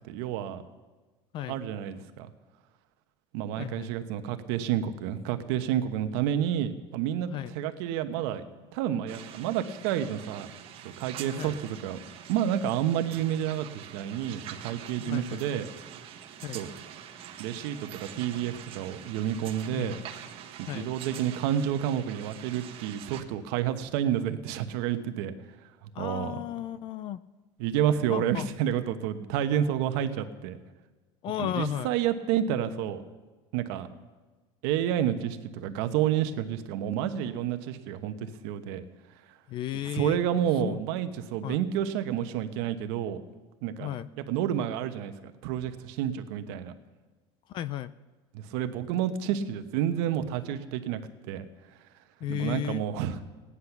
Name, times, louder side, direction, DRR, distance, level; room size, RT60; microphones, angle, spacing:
voice 1, 0.1-0.6 1.5-2.3 3.3-8.4 8.7-10.5 11.0-12.0 12.3-15.7 16.5-16.7 17.4-20.0 20.6-25.3 26.0-26.4 27.6-30.6 31.4-33.0 33.5-33.9 34.6-38.8 39.9-43.2 43.6-43.9 44.3-45.1 45.4-46.7 48.3-51.0 51.3-51.4 52.3-53.2, right 10 dB, 70° right, 9 dB, 1.1 m, -29 dB
voice 2, 3.6-3.9 7.3-7.5 11.4-11.6 15.0-15.4 16.4-16.6 19.7-20.1 20.7-20.9 25.9-27.2 28.1-28.5 31.2-31.9 39.5-40.2 40.6-40.8 41.4-41.6 43.8-44.1 47.5-47.9 52.2-52.8, left 11 dB, 40° left, 17 dB, 0.4 m, -34 dB
sound 1, 9.1-23.2, right 9 dB, 45° right, 1.2 m, -45 dB
16.5 x 10.0 x 5.9 m, 1.3 s
cardioid pair, 145°, 13 cm